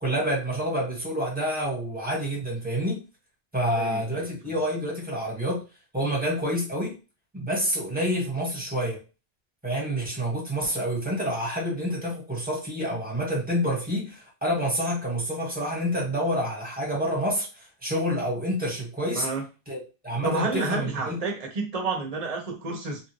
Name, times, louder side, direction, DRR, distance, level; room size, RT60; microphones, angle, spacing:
voice 1, 0.0-3.0 3.5-5.6 5.9-6.9 7.3-9.0 9.6-19.3 19.7-19.8 20.0-21.2, equal, 10° right, -4 dB, 1.5 m, -28 dB
voice 2, 3.8-4.3 19.1-19.4 20.2-23.0, right 3 dB, 40° right, 1 dB, 0.9 m, -30 dB
3.1 x 2.5 x 3.0 m, 0.31 s
omnidirectional pair, 1.1 m